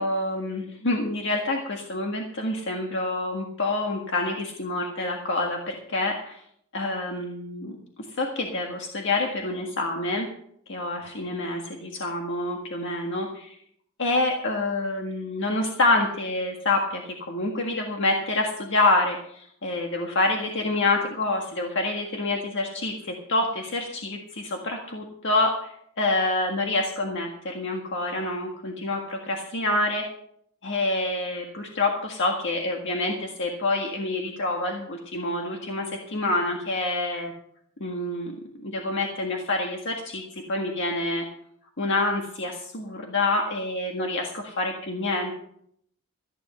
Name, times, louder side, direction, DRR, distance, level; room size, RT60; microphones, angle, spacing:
voice 1, 0.0-6.4 6.7-7.8 8.2-10.3 10.7-13.6 14.0-30.0 30.6-37.3 37.8-38.3 38.6-41.3 41.8-45.3, left 2 dB, 60° left, 1 dB, 1.7 m, -27 dB
15.0 x 10.0 x 5.6 m, 0.68 s
head